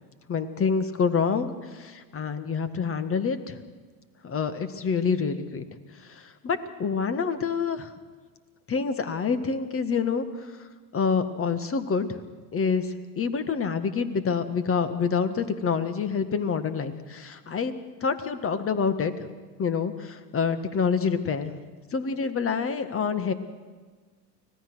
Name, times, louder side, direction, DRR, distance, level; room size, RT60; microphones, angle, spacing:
voice 1, 0.3-3.6 4.2-5.6 5.9-7.9 8.7-10.7 10.9-12.2 12.5-17.7 18.0-19.3 19.6-21.5 21.9-23.3, left 5 dB, 25° left, 11 dB, 1.8 m, -27 dB
25.0 x 17.5 x 6.3 m, 1.4 s
hypercardioid pair, 100°, 49 cm